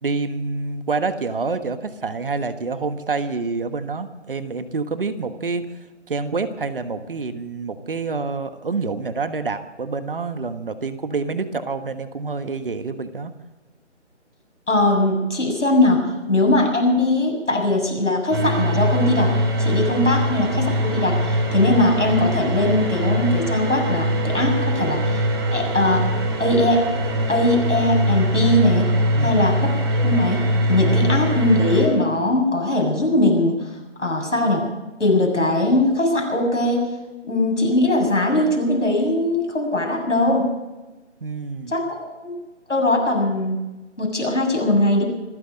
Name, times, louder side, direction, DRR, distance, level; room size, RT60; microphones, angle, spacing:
voice 1, 0.0-5.6 6.1-13.3 19.9-20.0 29.1-29.5 41.2-41.7, right 4 dB, 50° right, 11 dB, 1.4 m, -27 dB
voice 2, 14.7-16.0 16.3-19.3 19.6-25.2 25.5-26.0 26.4-26.8 27.3-28.9 29.2-29.7 30.0-30.4 30.7-33.6 34.0-34.6 35.0-36.9 37.2-40.5 41.7-42.4 42.7-43.6 44.0-45.0, left 1 dB, 85° left, 1 dB, 7.1 m, -20 dB
sound 1, 18.3-31.9, equal, 20° right, 2.3 m, -22 dB
26.5 x 9.9 x 5.2 m, 1.1 s
figure-of-eight pair, 160°, 36 cm